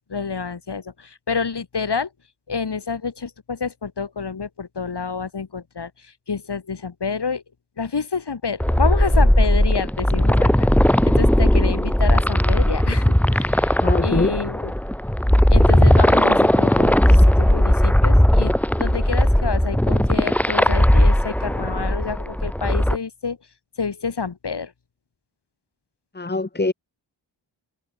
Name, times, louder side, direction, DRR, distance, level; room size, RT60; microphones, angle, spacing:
voice 1, 0.0-2.1 2.5-7.4 7.8-14.7 15.5-23.4 23.8-24.7, left 5 dB, 60° left, 6.3 m, -28 dB
sound 1, 8.6-23.0, equal, 5° left, 1.4 m, -17 dB
voice 2, 13.8-14.3 26.1-26.7, left 2 dB, 20° left, 2.2 m, -23 dB
wide cardioid pair, 115°, 45 cm